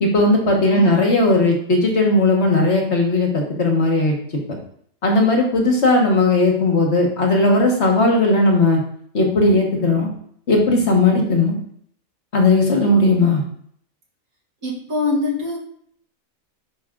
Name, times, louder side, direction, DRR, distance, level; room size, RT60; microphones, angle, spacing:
voice 1, 0.0-4.1 5.0-8.8 9.1-10.1 10.5-11.6 12.3-13.4, left 2 dB, 55° left, 1 dB, 1.5 m, -17 dB
voice 2, 14.6-15.6, left 3 dB, 75° right, -2 dB, 2.3 m, -23 dB
5.5 x 5.2 x 3.7 m, 0.65 s
omnidirectional pair, 1.5 m